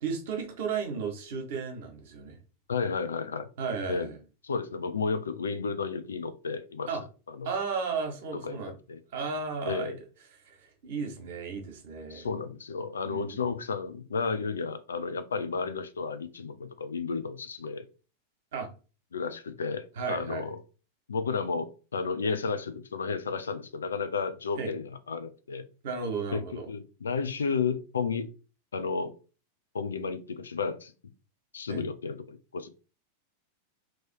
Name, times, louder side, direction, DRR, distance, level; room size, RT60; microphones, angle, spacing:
voice 1, 0.0-2.4 3.6-4.2 6.9-7.0 7.4-8.7 9.1-9.9 10.4-12.3 13.0-13.4 18.5-18.7 20.0-20.5 24.6-24.7 25.8-26.7 31.7-31.8, right 5 dB, 55° right, 1.2 m, -34 dB
voice 2, 2.7-3.5 3.9-4.1 4.4-6.9 7.3-7.5 8.4-8.6 8.9-9.0 9.6-10.0 12.1-17.9 19.1-20.6 21.1-25.6 26.3-28.3 28.7-29.1 29.7-30.9 31.5-32.7, left 5 dB, 70° left, 0.5 m, -32 dB
3.1 x 3.0 x 4.4 m
figure-of-eight pair, 90°, 0 cm